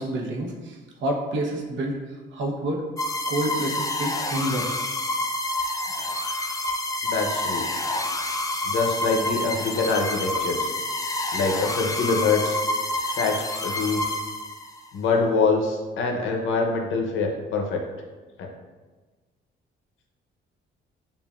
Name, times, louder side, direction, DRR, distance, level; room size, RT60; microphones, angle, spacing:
voice 1, 0.0-2.8 3.3-4.7, right 1 dB, 70° right, 0 dB, 0.9 m, -28 dB
sound 1, 3.0-14.8, left 1 dB, 15° left, 0.4 m, -28 dB
voice 2, 7.0-7.7 8.6-10.7 11.3-12.6 13.2-14.2 14.9-17.8 18.4-18.5, left 4 dB, 80° left, 2 dB, 0.7 m, -25 dB
6.9 x 2.5 x 2.4 m, 1.3 s
cardioid pair, 90°, 20 cm